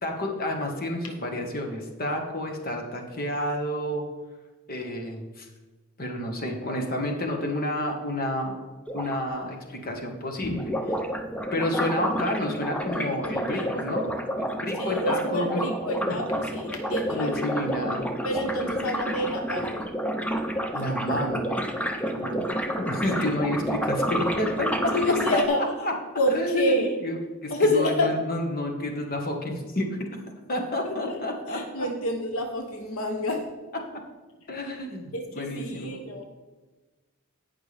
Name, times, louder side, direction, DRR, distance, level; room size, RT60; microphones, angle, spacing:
voice 1, 0.0-4.1 4.7-5.5 6.0-8.6 8.9-10.9 11.5-15.6 16.0-16.1 17.1-18.0 20.7-21.6 22.1-24.9 25.3-25.4 25.8-25.9 26.3-27.2 27.4-30.2 30.5-31.9 34.5-36.2, left 1 dB, 45° left, 2 dB, 1.6 m, -30 dB
sound 1, 8.9-9.2 10.4-25.5, equal, 5° left, 0.6 m, -30 dB
voice 2, 14.8-17.6 18.2-19.8 24.9-25.6 26.2-27.0 27.5-28.2 30.8-31.2 31.5-33.5 35.1-36.2, left 1 dB, 80° left, 4 dB, 1.1 m, -28 dB
17.0 x 5.9 x 3.5 m, 1.3 s
head